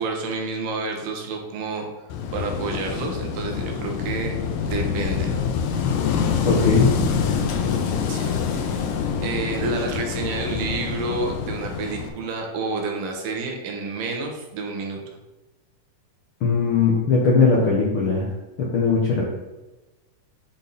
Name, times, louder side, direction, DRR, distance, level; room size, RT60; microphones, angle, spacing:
voice 1, 0.0-1.9 2.3-4.3 4.6-5.3 8.1-8.9 9.2-15.0, right 3 dB, 80° right, 2 dB, 2.7 m, -29 dB
Wind / Waves surf, 2.1-12.1, left 6 dB, 85° left, 2.4 m, -26 dB
voice 2, 6.4-6.9 16.4-18.3 18.6-19.2, left 4 dB, 70° left, -3 dB, 1.2 m, -19 dB
8.8 x 4.3 x 4.0 m, 1.1 s
omnidirectional pair, 3.8 m